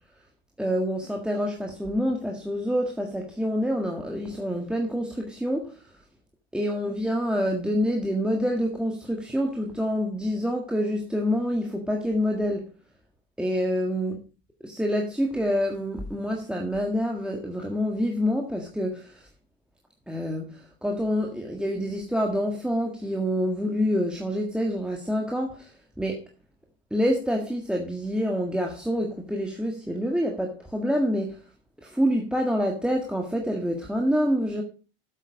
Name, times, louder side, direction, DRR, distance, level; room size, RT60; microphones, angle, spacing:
voice 1, 0.6-6.0 6.5-12.7 13.4-14.1 14.8-19.3 20.1-26.2 26.9-31.4 31.8-34.6, equal, 5° right, 1.6 m, -27 dB
8.3 x 7.3 x 5.2 m
hypercardioid pair, 95°, 32 cm